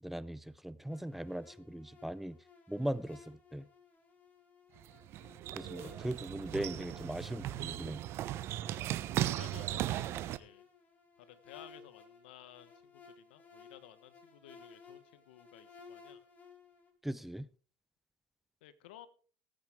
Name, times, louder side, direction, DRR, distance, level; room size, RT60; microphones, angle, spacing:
voice 1, 0.0-2.4 2.7-3.7 5.5-8.0 17.0-17.5, right 1 dB, 5° right, 0.6 m, -39 dB
sound 1, 0.9-16.9, left 5 dB, 30° left, 3.6 m, -58 dB
sound 2, 4.8-10.4, right 13 dB, 55° right, 0.9 m, -37 dB
voice 2, 9.3-10.7 11.2-16.2 18.6-19.1, left 12 dB, 80° left, 1.4 m, -55 dB
18.0 x 8.9 x 3.7 m
supercardioid pair, 95°, 5 cm